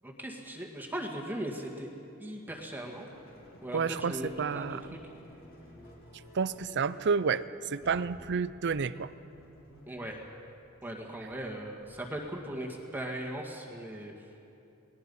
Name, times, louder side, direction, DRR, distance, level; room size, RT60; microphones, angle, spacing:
voice 1, 0.0-1.9 2.2-3.1 3.6-4.8 9.9-10.2 10.8-14.1, right 1 dB, 10° right, 0 dB, 1.9 m, -38 dB
sound 1, 2.7-12.8, left 1 dB, 45° left, 3.8 m, -54 dB
voice 2, 3.7-5.0 6.3-9.1, right 5 dB, 55° right, 16 dB, 0.6 m, -30 dB
29.0 x 20.0 x 5.5 m, 2.8 s
head